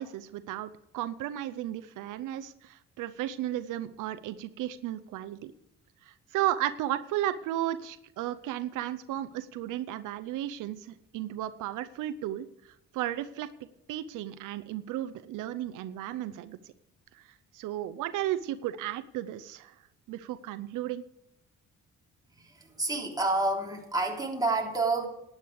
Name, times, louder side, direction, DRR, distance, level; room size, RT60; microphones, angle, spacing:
voice 1, 0.0-5.5 6.0-12.5 12.9-13.5 13.9-16.6 17.1-17.2 17.5-19.7 20.1-21.0, right 13 dB, 90° right, 13 dB, 0.7 m, -34 dB
voice 2, 22.3-25.1, right 2 dB, 15° right, -1 dB, 3.4 m, -29 dB
12.0 x 9.7 x 4.7 m, 0.82 s
cardioid pair, 90°, 30 cm